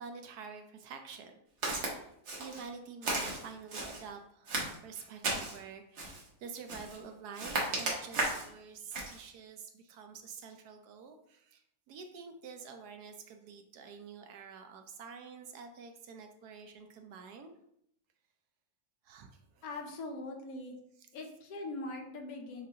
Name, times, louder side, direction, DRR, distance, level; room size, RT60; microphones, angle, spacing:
voice 1, 0.0-1.4 1.8-2.1 2.4-11.6 11.9-17.5 19.1-19.3 19.6-19.7, right 5 dB, 75° right, 5 dB, 1.1 m, -48 dB
Walk footsteps, 1.6-1.9 2.3-2.7 3.0-4.0 4.5-5.6 6.0-6.3 6.7-7.0 7.3-8.5 8.9-9.2, right 2 dB, 50° right, 1.1 m, -35 dB
voice 2, 19.6-20.7 21.1-22.7, left 2 dB, 70° left, 3 dB, 1.0 m, -41 dB
6.4 x 2.5 x 2.8 m, 0.72 s
omnidirectional pair, 1.8 m